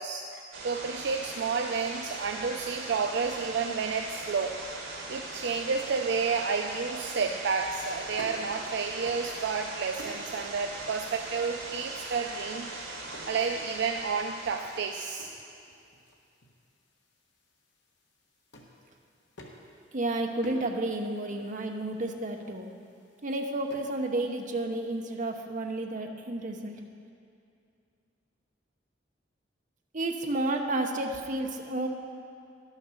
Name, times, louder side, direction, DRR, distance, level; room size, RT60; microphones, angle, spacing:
voice 1, 0.0-4.6 5.1-12.7 13.3-15.3, right 5 dB, 60° right, 4 dB, 0.4 m, -31 dB
sound 1, 0.5-15.1, right 2 dB, 80° right, 1.9 m, -40 dB
sound 2, 7.1-24.6, left 1 dB, 60° left, 1.3 m, -54 dB
voice 2, 19.9-22.7 23.2-26.8 29.9-31.9, right 2 dB, 40° right, 3 dB, 0.9 m, -31 dB
11.5 x 6.5 x 6.5 m, 2.5 s
head